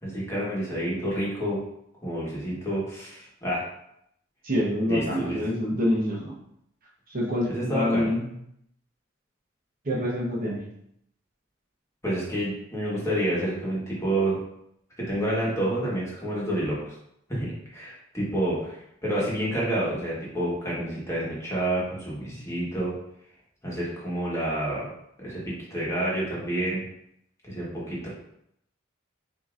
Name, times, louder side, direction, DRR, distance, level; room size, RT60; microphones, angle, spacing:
voice 1, 0.0-1.6 2.0-3.6 4.8-5.4 7.4-8.1 12.0-14.4 15.0-16.9 17.3-22.9 23.6-24.8 25.2-26.8 27.4-28.1, right 1 dB, 15° left, -6 dB, 1.3 m, -29 dB
voice 2, 4.4-6.3 7.1-8.2 9.8-10.6, left 1 dB, 45° right, -4 dB, 1.0 m, -26 dB
6.5 x 2.8 x 2.5 m, 0.76 s
head